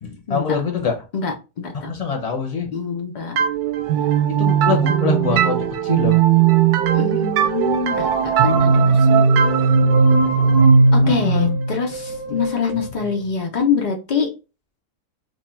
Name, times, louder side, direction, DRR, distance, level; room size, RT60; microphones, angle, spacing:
voice 1, 0.0-1.0 1.7-2.7 4.3-6.2 11.0-11.5 12.3-12.4 12.7-12.8, left 5 dB, 35° left, 0.6 m, -24 dB
voice 2, 1.1-1.9 2.7-3.4 6.9-8.1 8.4-9.2 10.9-14.3, left 5 dB, 85° left, 0.4 m, -25 dB
sound 1, 3.4-12.9, right 5 dB, 75° right, 1.0 m, -17 dB
3.1 x 2.2 x 4.2 m
omnidirectional pair, 1.6 m